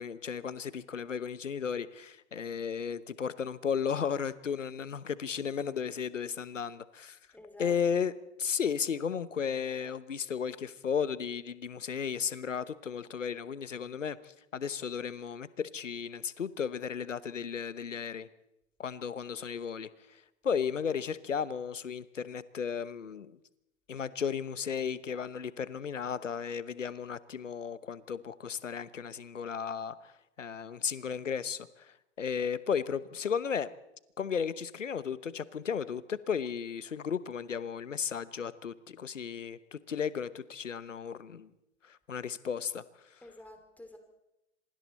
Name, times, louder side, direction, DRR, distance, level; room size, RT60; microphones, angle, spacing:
voice 1, 0.0-7.2 7.6-8.1 8.4-18.3 18.8-23.4 23.9-30.1 30.4-33.7 34.2-41.5 41.8-42.8, left 7 dB, 80° left, 17 dB, 1.1 m, -34 dB
voice 2, 7.3-7.8 43.2-44.0, left 1 dB, 5° left, 5 dB, 2.9 m, -50 dB
27.0 x 23.5 x 4.2 m, 0.88 s
figure-of-eight pair, 105°, 37 cm